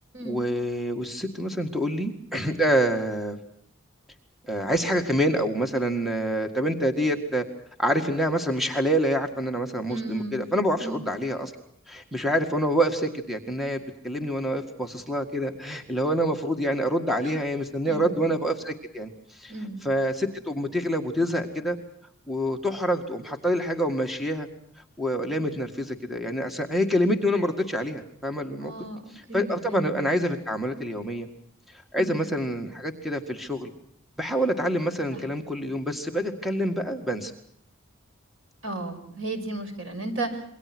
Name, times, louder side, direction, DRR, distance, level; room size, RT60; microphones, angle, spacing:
voice 1, 0.2-3.4 4.5-7.5 7.8-11.5 11.9-19.5 19.8-21.8 22.3-24.5 25.0-28.7 29.2-31.3 31.7-33.7 34.2-37.3, equal, ahead, 5 dB, 1.9 m, -26 dB
voice 2, 9.9-10.4 10.8-11.1 17.2-17.3 17.9-18.2 19.5-19.8 28.6-30.0 32.0-32.3 35.1-35.2 38.6-40.5, right 2 dB, 70° right, 7 dB, 5.5 m, -34 dB
27.5 x 23.5 x 6.1 m, 0.70 s
head